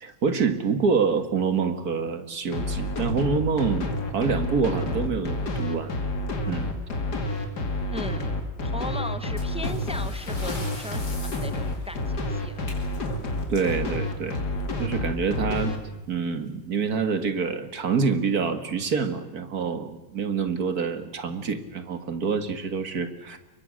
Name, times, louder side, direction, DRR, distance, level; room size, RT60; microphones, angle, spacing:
voice 1, 0.0-5.9 6.5-6.7 13.5-14.4 14.8-15.8 16.1-23.4, right 5 dB, 55° right, 9 dB, 2.2 m, -26 dB
sound 1, 2.5-15.8, left 2 dB, 60° left, 2.9 m, -29 dB
voice 2, 7.9-8.3 8.6-12.6, left 1 dB, 5° right, 10 dB, 0.7 m, -37 dB
sound 2, 9.4-14.8 16.0-16.2 16.5-16.6 17.2-17.3 18.0-18.3, left 1 dB, 85° left, 5.6 m, -42 dB
28.5 x 23.5 x 6.5 m, 1.0 s
omnidirectional pair, 2.0 m